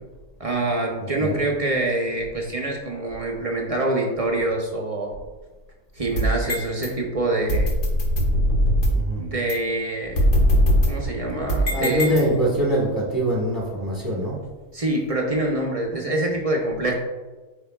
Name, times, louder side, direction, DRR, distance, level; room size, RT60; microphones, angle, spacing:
voice 1, 0.4-5.1 5.9-7.7 9.2-10.2 10.9-12.2 14.7-16.9, right 1 dB, 35° right, 0 dB, 0.6 m, -25 dB
voice 2, 1.0-1.4 8.9-9.2 11.6-14.4, right 1 dB, 15° right, -4 dB, 1.4 m, -24 dB
sound 1, 6.0-6.9 7.5-9.1 9.5-9.6 10.2-12.6, equal, 55° left, 1.5 m, -21 dB
8.4 x 5.1 x 2.3 m, 1.2 s
omnidirectional pair, 1.6 m